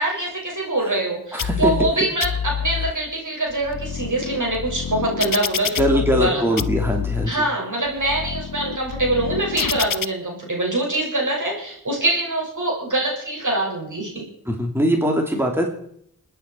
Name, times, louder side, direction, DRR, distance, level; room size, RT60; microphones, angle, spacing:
voice 1, 0.0-6.6 7.2-14.3, right 2 dB, 65° right, -2 dB, 6.3 m, -24 dB
voice 2, 1.3-1.7 5.8-7.4 14.5-15.7, equal, 5° right, 1 dB, 2.9 m, -21 dB
sound 1, 1.4-1.9 2.2-2.9 3.5-6.3 6.6-7.3 7.9-10.1, left 7 dB, 75° left, 0.6 m, -27 dB
28.0 x 9.6 x 4.6 m, 0.69 s
wide cardioid pair, 45°, 33 cm